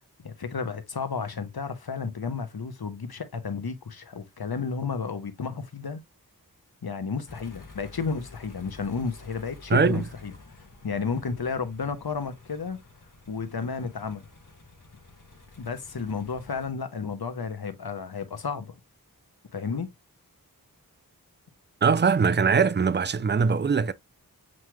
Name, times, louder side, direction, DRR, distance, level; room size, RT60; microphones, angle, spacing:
voice 1, 0.2-6.0 6.8-10.3 10.8-12.8 13.3-14.2 15.6-18.7 19.5-19.9, left 5 dB, 75° left, 0.8 m, -32 dB
sound 1, 7.3-16.7, left 3 dB, 55° left, 1.2 m, -50 dB
voice 2, 9.7-10.1 21.8-23.9, right 5 dB, 30° right, 0.4 m, -21 dB
7.4 x 3.0 x 2.2 m
wide cardioid pair, 45°, 37 cm